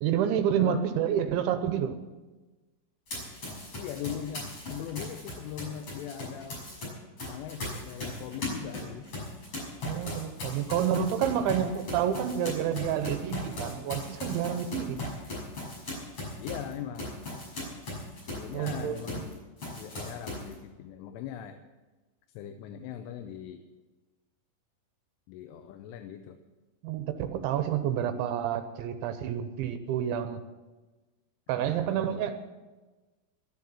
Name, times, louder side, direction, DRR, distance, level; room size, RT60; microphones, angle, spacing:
voice 1, 0.0-2.0 9.8-15.1 18.5-19.2 26.8-30.4 31.5-32.3, right 9 dB, 80° right, 8 dB, 3.0 m, -29 dB
Run, 3.1-6.9 7.2-19.3 19.6-20.5, left 2 dB, 30° left, 6.7 m, -38 dB
voice 2, 3.8-6.6 7.3-9.1 11.3-11.6 16.4-17.2 18.3-21.6 22.3-23.7 25.3-26.4 31.5-32.3, left 10 dB, 85° left, 7 dB, 3.2 m, -40 dB
13.5 x 10.5 x 7.2 m, 1.2 s
omnidirectional pair, 5.6 m